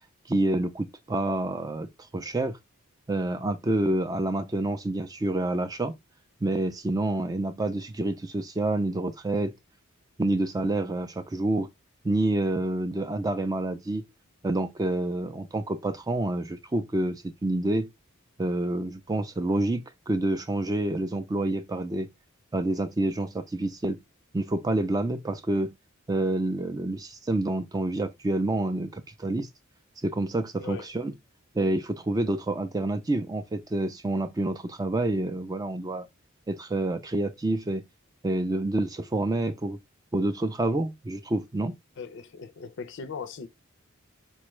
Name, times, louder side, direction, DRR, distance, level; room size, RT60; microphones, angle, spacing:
voice 1, 0.3-1.9 2.1-2.6 3.1-5.9 6.4-9.5 10.2-11.7 12.0-14.0 14.4-17.9 18.4-22.1 22.5-24.0 24.3-25.7 26.1-29.5 30.0-31.1 31.5-36.1 36.5-37.8 38.2-39.8 40.1-41.7, right 2 dB, 15° right, 0.4 m, -28 dB
voice 2, 30.6-30.9 42.0-43.5, left 5 dB, 60° left, 0.4 m, -39 dB
4.2 x 2.3 x 3.0 m
head